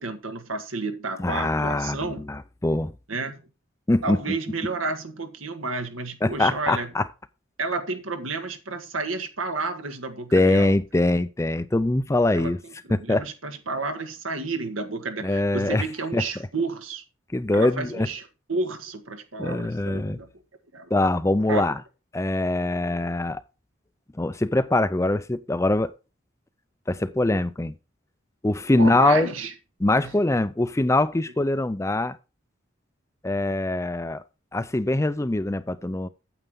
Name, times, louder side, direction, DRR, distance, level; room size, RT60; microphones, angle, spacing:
voice 1, 0.0-2.2 3.1-3.4 4.0-6.9 7.6-10.7 12.3-12.5 12.9-17.0 17.5-18.2 18.5-20.3 20.7-20.9 21.5-21.7 28.7-29.5 30.0-30.1, right 3 dB, 90° right, 1.7 m, -31 dB
voice 2, 1.2-2.9 3.9-4.2 6.2-7.1 10.3-12.6 12.9-13.3 15.2-15.8 16.1-16.2 17.3-18.1 19.4-20.2 20.9-21.8 22.1-23.4 24.2-25.9 26.9-27.7 28.4-29.3 29.8-32.2 33.2-34.2 34.5-36.1, left 2 dB, 15° left, 0.4 m, -23 dB
9.1 x 8.0 x 3.7 m
head